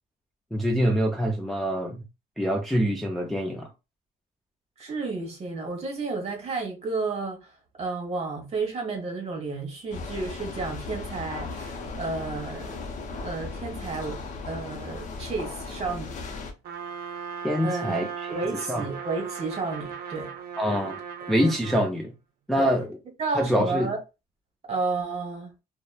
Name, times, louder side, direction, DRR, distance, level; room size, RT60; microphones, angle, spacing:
voice 1, 0.5-2.0 2.4-3.7 17.4-18.4 18.7-18.9 20.6-21.0 21.3-22.1 22.5-22.9 23.3-23.9, equal, ahead, 0.4 m, -25 dB
voice 2, 4.8-12.8 13.2-16.4 17.6-18.0 18.3-20.3 22.6-22.7 23.2-24.0 24.7-25.5, right 3 dB, 40° right, 1.1 m, -32 dB
sound 1, 9.9-16.5, left 3 dB, 45° left, 0.6 m, -36 dB
Trumpet, 16.6-21.9, right 7 dB, 65° right, 0.6 m, -37 dB
2.9 x 2.1 x 2.2 m
cardioid pair, 110°, 17 cm